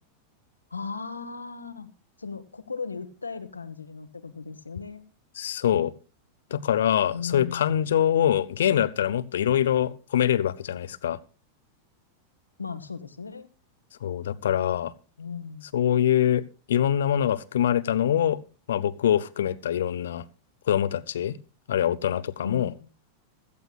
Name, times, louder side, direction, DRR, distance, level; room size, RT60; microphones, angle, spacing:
voice 1, 0.7-1.9 2.2-5.0 7.1-7.9 12.6-13.5 15.2-15.6 22.4-22.9, left 5 dB, 80° left, 1.2 m, -36 dB
voice 2, 5.4-5.9 6.5-11.2 14.0-14.9 15.7-16.4 16.7-18.4 18.7-20.2 20.7-21.4 21.7-22.7, left 10 dB, 60° left, 0.7 m, -24 dB
16.5 x 14.0 x 2.4 m
figure-of-eight pair, 90°, 0 cm